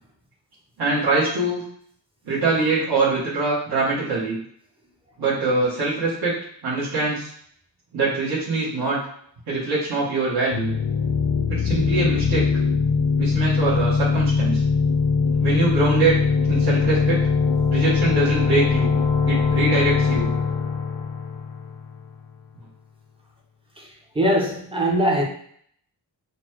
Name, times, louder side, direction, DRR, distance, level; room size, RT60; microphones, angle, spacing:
voice 1, 0.8-1.6 2.2-4.4 5.2-6.4 6.6-7.3 7.9-9.0 9.5-10.7 11.5-12.5 13.2-14.6 15.4-16.2 16.5-17.2 17.7-18.9 19.3-20.3, right 3 dB, 55° right, -9 dB, 1.3 m, -23 dB
sound 1, 10.5-22.1, left 5 dB, 75° left, 0.7 m, -21 dB
voice 2, 24.2-25.2, equal, 10° right, -2 dB, 0.7 m, -20 dB
4.1 x 2.2 x 4.5 m, 0.63 s
wide cardioid pair, 165°, 44 cm